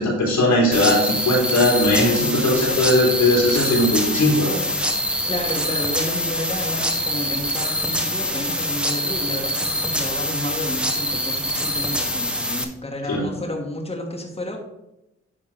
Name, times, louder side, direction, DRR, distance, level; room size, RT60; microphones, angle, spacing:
voice 1, 0.0-4.6 13.1-13.3, left 1 dB, 80° left, -4 dB, 3.2 m, -19 dB
sound 1, 0.7-12.6, equal, 5° right, 1.4 m, -24 dB
voice 2, 5.2-14.6, left 1 dB, 20° left, 0 dB, 1.8 m, -31 dB
10.0 x 3.6 x 5.2 m, 0.91 s
supercardioid pair, 40°, 29 cm